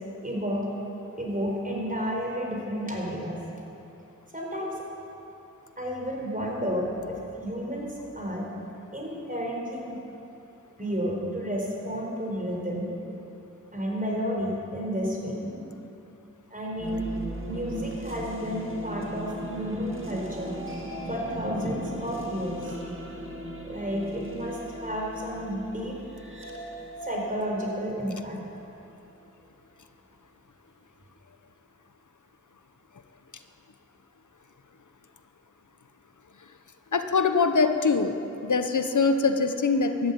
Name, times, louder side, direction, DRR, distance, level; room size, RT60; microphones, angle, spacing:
voice 1, 0.2-0.7 1.2-3.4 4.3-4.7 5.8-7.9 8.1-8.5 8.9-10.0 10.8-13.2 13.7-15.8 16.5-17.1 17.5-20.6 21.1-22.7 23.6-26.0 27.0-28.4, equal, 25° right, -2 dB, 4.3 m, -31 dB
sound 1, 16.7-28.6, right 1 dB, 45° right, 2.1 m, -38 dB
voice 2, 36.9-38.2 38.4-40.1, left 4 dB, 80° left, 8 dB, 0.9 m, -23 dB
14.0 x 11.5 x 8.5 m, 2.9 s
wide cardioid pair, 60°, 30 cm